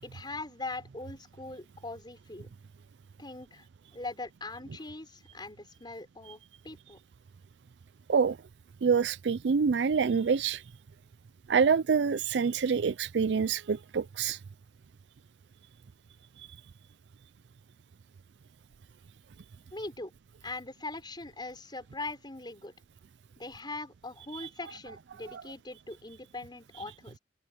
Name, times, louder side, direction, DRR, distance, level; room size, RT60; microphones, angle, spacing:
voice 1, 0.0-2.5 3.2-3.6 3.9-7.0 19.7-20.1 20.4-22.7 23.4-27.2, left 2 dB, 25° left, 5.4 m, -41 dB
voice 2, 8.8-10.6 11.5-14.4 24.3-24.5 25.3-25.4, right 6 dB, 70° right, 0.4 m, -26 dB
open air
head